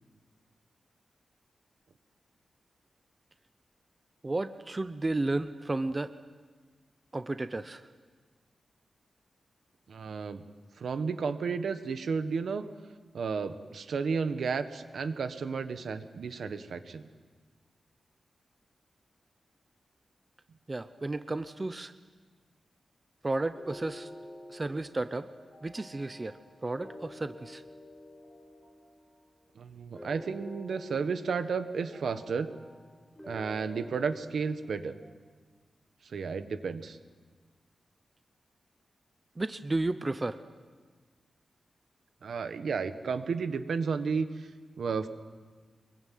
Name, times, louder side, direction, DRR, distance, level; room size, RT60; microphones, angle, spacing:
voice 1, 4.2-6.1 7.1-7.8 20.7-21.9 23.2-24.1 24.5-25.3 25.6-26.4 26.6-27.6 39.4-40.4, right 2 dB, 20° right, 11 dB, 0.7 m, -32 dB
voice 2, 9.9-10.4 10.8-12.6 13.1-17.0 29.6-32.5 33.3-35.0 36.0-37.0 42.2-44.5 44.8-45.1, right 5 dB, 75° right, 10 dB, 1.4 m, -32 dB
sound 1, 23.5-35.0, left 1 dB, 5° left, 6.1 m, -49 dB
25.0 x 22.5 x 9.4 m, 1.4 s
wide cardioid pair, 175°, 0 cm